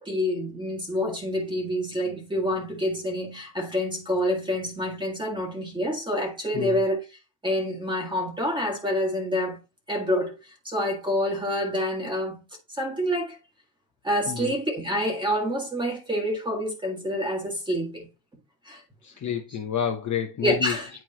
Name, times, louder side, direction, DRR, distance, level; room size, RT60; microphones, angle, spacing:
voice 1, 0.0-7.1 7.4-9.6 9.9-10.4 10.7-12.4 12.7-13.4 14.0-18.1 18.7-18.8 20.4-20.9, equal, 10° right, 1.7 m, -27 dB
voice 2, 19.0-20.8, left 8 dB, 35° left, 0.9 m, -29 dB
9.2 x 4.5 x 2.8 m
cardioid pair, 160°, 48 cm